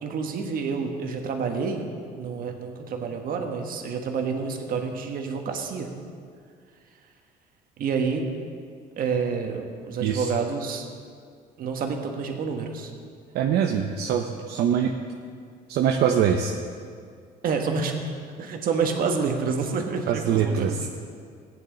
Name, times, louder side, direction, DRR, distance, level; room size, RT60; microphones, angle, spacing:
voice 1, 0.0-1.9 2.2-5.9 7.8-8.3 9.0-10.9 11.6-12.9 17.4-17.9 18.4-20.9, right 5 dB, 60° right, 3 dB, 1.4 m, -28 dB
voice 2, 13.3-14.9 15.7-16.5 20.1-20.9, right 8 dB, 75° right, 2 dB, 0.7 m, -23 dB
15.5 x 9.4 x 3.9 m, 2.2 s
cardioid pair, 110°, 17 cm